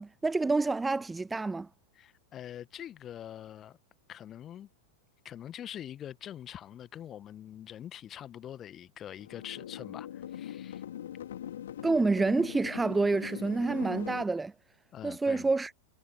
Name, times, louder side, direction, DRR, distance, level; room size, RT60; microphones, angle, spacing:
voice 1, 0.0-1.7 11.8-14.5 15.0-15.7, right 3 dB, 10° right, 0.4 m, -28 dB
voice 2, 1.9-3.8 4.1-4.7 5.2-10.8 14.9-15.5, left 10 dB, 30° left, 1.3 m, -44 dB
sound 1, 9.2-14.2, left 10 dB, 60° left, 3.5 m, -42 dB
figure-of-eight pair, 90°, 0 cm